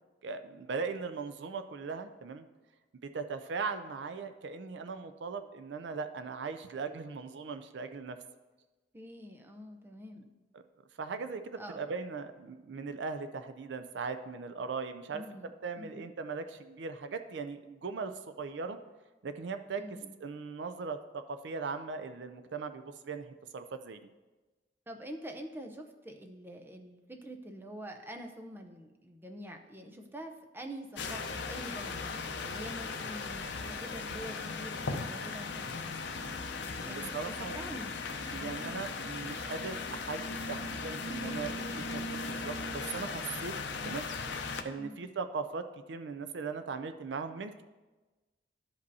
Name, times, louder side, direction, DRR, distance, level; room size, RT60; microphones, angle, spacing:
voice 1, 0.2-2.5 3.0-8.2 10.5-10.6 11.0-15.2 15.6-18.8 19.2-19.8 20.2-24.0 36.9-37.6 38.3-43.5 43.8-44.1 44.3-47.6, right 4 dB, 70° right, 9 dB, 0.4 m, -39 dB
voice 2, 8.9-10.3 11.6-11.8 15.1-16.1 19.8-20.2 24.9-35.9 36.8-38.0 38.3-38.6 43.7-44.0 44.8-45.1, equal, 10° right, 3 dB, 0.6 m, -46 dB
sound 1, 31.0-44.6, left 4 dB, 75° left, 0.6 m, -38 dB
13.0 x 5.2 x 2.7 m, 1.2 s
head